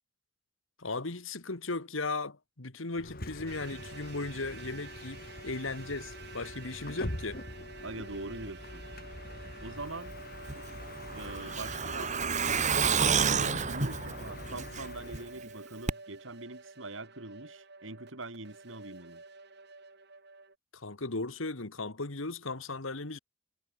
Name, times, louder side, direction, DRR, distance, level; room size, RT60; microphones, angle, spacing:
voice 1, 0.8-7.4 20.7-23.2, left 3 dB, 80° left, 1.9 m, -37 dB
Bus, 2.9-15.4, left 1 dB, 45° left, 4.7 m, -43 dB
sound 1, 3.5-20.5, right 4 dB, 55° right, 5.2 m, -50 dB
voice 2, 7.8-8.9 9.6-10.1 11.1-19.2, right 2 dB, 70° right, 3.6 m, -43 dB
Truck, 10.5-15.2 15.5-15.6 15.9-16.0, right 6 dB, 35° right, 1.7 m, -29 dB
head